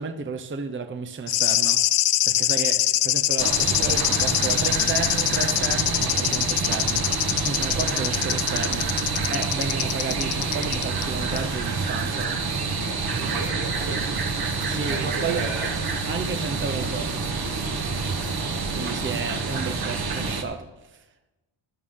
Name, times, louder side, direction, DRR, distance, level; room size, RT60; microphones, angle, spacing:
voice 1, 0.0-1.8 2.3-8.9 9.3-12.3 14.6-15.5 16.1-17.3 18.7-21.1, right 4 dB, 25° right, 7 dB, 0.7 m, -32 dB
sound 1, 1.3-11.1 11.4-11.5, left 15 dB, 85° left, 0.5 m, -24 dB
sound 2, 3.4-20.4, right 4 dB, 50° right, 1.4 m, -27 dB
voice 2, 13.0-15.8, right 3 dB, 70° right, 1 dB, 2.3 m, -35 dB
12.5 x 11.5 x 3.7 m, 1.0 s
cardioid pair, 100°, 47 cm